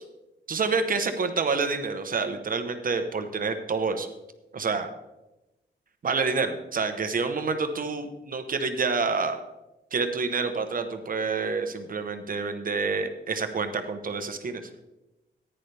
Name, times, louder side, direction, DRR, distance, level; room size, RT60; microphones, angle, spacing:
voice 1, 0.5-4.1 4.5-4.9 6.0-9.4 9.9-14.6, right 4 dB, 45° right, 8 dB, 1.1 m, -28 dB
15.0 x 10.0 x 3.4 m, 0.99 s
wide cardioid pair, 135°, 19 cm